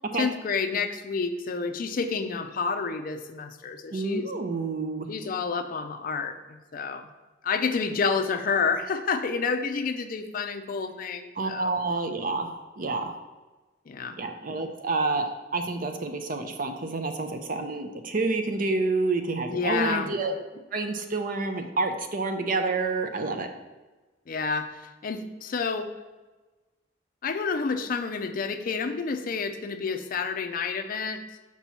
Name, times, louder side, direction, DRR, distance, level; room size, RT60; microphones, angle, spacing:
voice 1, 0.1-4.3 5.1-7.1 7.4-11.8 13.9-14.2 19.5-20.1 24.3-25.9 27.2-31.2, left 5 dB, 45° left, 8 dB, 0.4 m, -29 dB
voice 2, 3.9-5.1 11.4-13.2 14.2-20.3 20.7-23.5, right 3 dB, 45° right, 6 dB, 0.6 m, -28 dB
6.0 x 3.0 x 5.6 m, 1.2 s
head